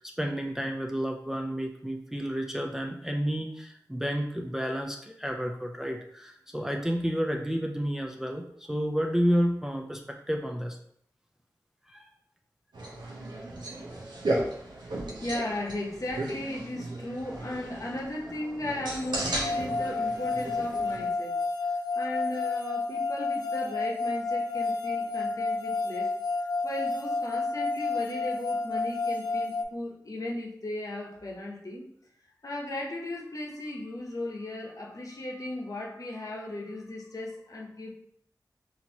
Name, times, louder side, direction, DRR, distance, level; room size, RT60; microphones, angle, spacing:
voice 1, 0.0-10.8 11.9-12.1, equal, 5° right, 2 dB, 0.4 m, -30 dB
sound 1, 12.7-21.1, right 1 dB, 85° right, 0.7 m, -35 dB
voice 2, 15.2-21.4 21.7-26.1 26.6-31.8 32.4-37.9, left 1 dB, 50° left, -2 dB, 0.9 m, -36 dB
sound 2, 19.4-29.6, left 3 dB, 70° left, 0.4 m, -30 dB
4.3 x 2.7 x 2.8 m, 0.69 s
cardioid pair, 50°, 7 cm